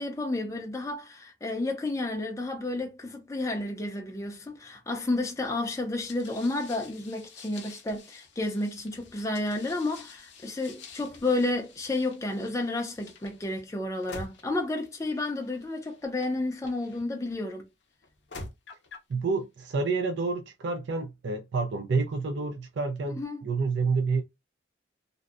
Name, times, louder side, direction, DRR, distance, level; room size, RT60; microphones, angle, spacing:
voice 1, 0.0-17.7 23.1-23.5, left 2 dB, 15° left, 0.4 m, -31 dB
sound 1, 6.1-17.4 18.0-19.1, left 3 dB, 65° left, 0.6 m, -48 dB
voice 2, 19.1-24.2, right 4 dB, 65° right, 0.4 m, -29 dB
2.6 x 2.0 x 2.4 m
head